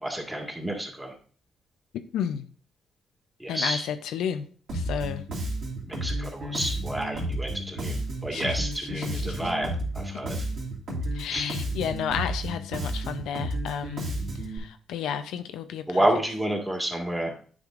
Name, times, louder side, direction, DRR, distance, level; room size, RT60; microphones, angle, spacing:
voice 1, 0.0-1.1 3.4-3.8 5.9-9.7 10.0-10.5 11.3-11.5 15.9-17.3, right 1 dB, 10° right, 1.8 m, -29 dB
voice 2, 1.9-2.5 3.5-4.5 4.7-5.2 8.3-8.6 8.8-9.5 11.1-14.1 14.4-16.1, left 8 dB, 85° left, 0.5 m, -32 dB
Bass guitar, 4.7-14.6, right 1 dB, 65° right, 2.4 m, -32 dB
9.5 x 5.0 x 2.5 m
cardioid pair, 90°, 0 cm